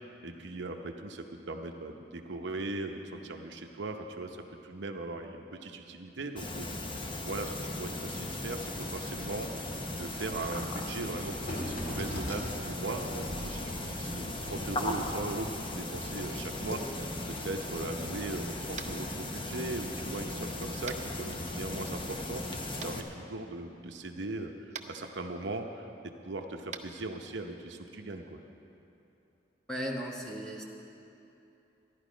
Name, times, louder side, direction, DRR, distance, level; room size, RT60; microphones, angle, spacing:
voice 1, 0.2-6.9 7.2-16.8 17.3-28.4, right 2 dB, 70° right, 4 dB, 0.8 m, -39 dB
sound 1, 6.4-23.0, left 1 dB, 25° left, 0.8 m, -37 dB
sound 2, 11.5-16.3 16.6-16.8, equal, 55° left, 2.2 m, -41 dB
Tap, 18.7-19.0 20.9-21.0 22.8-22.9 24.7-24.9 26.7-26.8, right 7 dB, 40° right, 0.6 m, -41 dB
voice 2, 29.7-30.6, equal, 5° left, -1 dB, 1.2 m, -36 dB
13.5 x 11.5 x 5.1 m, 2.9 s
head